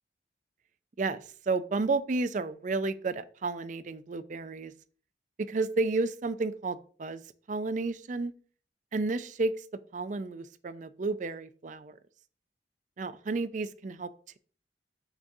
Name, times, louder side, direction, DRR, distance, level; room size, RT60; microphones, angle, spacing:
voice 1, 1.0-4.7 5.4-7.2 7.5-8.3 8.9-9.6 9.9-12.0 13.0-14.1, right 3 dB, 45° right, 13 dB, 0.4 m, -31 dB
6.1 x 5.9 x 2.6 m, 0.42 s
head